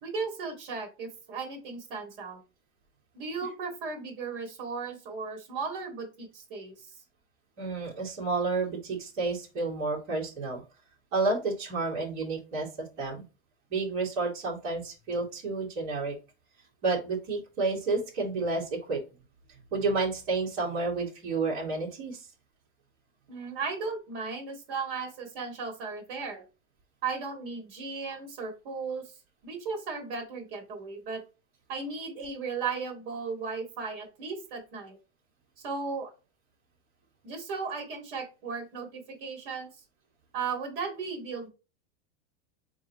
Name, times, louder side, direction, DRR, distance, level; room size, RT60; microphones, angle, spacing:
voice 1, 0.0-2.4 3.1-6.9 23.3-26.4 27.0-29.0 29.4-31.2 31.7-35.0 35.6-36.1 37.2-39.7 40.3-41.5, right 5 dB, 55° right, 2 dB, 2.1 m, -36 dB
voice 2, 7.6-10.6 11.1-12.7 13.0-13.2 13.7-16.1 16.8-19.0 19.7-22.2, right 3 dB, 35° right, -4 dB, 2.2 m, -30 dB
4.3 x 3.7 x 2.9 m, 0.30 s
supercardioid pair, 170°, 34 cm